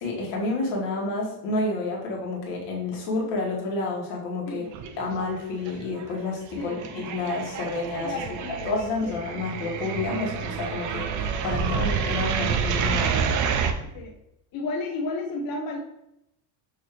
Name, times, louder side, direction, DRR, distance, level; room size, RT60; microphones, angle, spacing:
voice 1, 0.0-4.7 5.0-8.2 8.6-11.1 11.4-13.2, left 2 dB, 70° left, -2 dB, 1.6 m, -29 dB
sound 1, 4.7-5.4 5.7-13.7, right 6 dB, 45° right, 0.5 m, -28 dB
voice 2, 6.5-6.9 8.0-8.8 9.0-9.2 13.9-14.1 14.5-15.8, left 3 dB, 50° left, -2 dB, 0.7 m, -32 dB
6.3 x 2.8 x 3.0 m, 0.83 s
cardioid pair, 135°, 44 cm